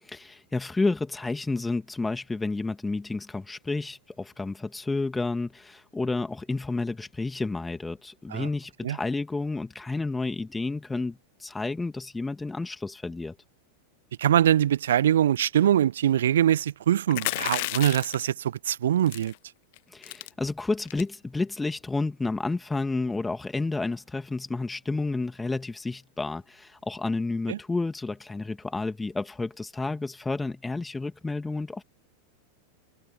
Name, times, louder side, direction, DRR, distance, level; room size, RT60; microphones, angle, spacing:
voice 1, 0.0-13.4 19.9-31.8, left 3 dB, 10° left, 2.4 m, -30 dB
voice 2, 14.2-19.3 27.5-27.6, right 10 dB, 60° right, 0.4 m, -23 dB
sound 1, 17.1-18.3 19.1-19.4 19.7-19.8 20.0-20.3 20.9-21.1, left 24 dB, 50° left, 0.8 m, -31 dB
figure-of-eight pair, 90°, 0 cm